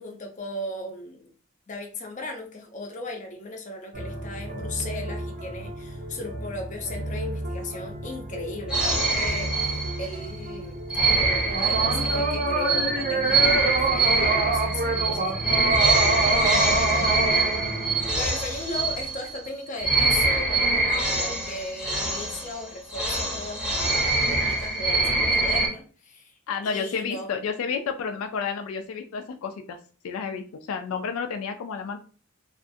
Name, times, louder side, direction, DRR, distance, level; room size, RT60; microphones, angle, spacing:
voice 1, 0.0-1.3 1.7-10.8 11.0-15.3 18.1-27.3, left 2 dB, 35° left, 2 dB, 0.6 m, -36 dB
sound 1, 3.9-18.2, right 2 dB, 40° right, 0.7 m, -28 dB
sound 2, 8.7-10.3 10.9-19.5 19.8-25.7, right 3 dB, 5° right, 0.7 m, -24 dB
voice 2, 16.1-17.3 26.5-29.8 30.0-32.0, left 6 dB, 85° left, 6 dB, 0.3 m, -31 dB
2.4 x 2.3 x 2.5 m, 0.39 s
head